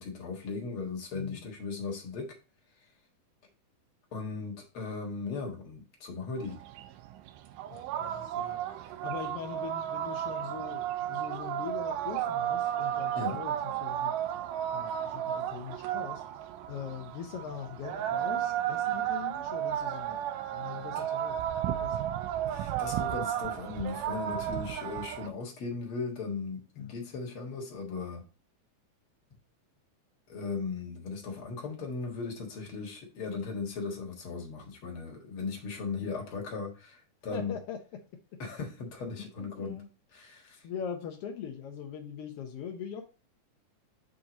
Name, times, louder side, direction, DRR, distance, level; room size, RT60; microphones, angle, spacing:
voice 1, 0.0-2.3 4.1-6.6 13.2-13.4 22.5-28.2 30.3-37.6 38.4-39.8 40.1-40.7, left 4 dB, 50° left, 1 dB, 2.0 m, -37 dB
voice 2, 1.1-1.4 7.7-8.6 9.0-14.1 14.7-16.2 16.7-20.3 20.5-22.1 26.8-26.9 37.3-37.8 39.2-39.9 40.6-43.0, left 8 dB, 75° left, 2 dB, 1.4 m, -41 dB
sound 1, 6.4-25.3, right 11 dB, 85° right, 2.2 m, -33 dB
7.4 x 3.9 x 3.9 m, 0.32 s
omnidirectional pair, 3.8 m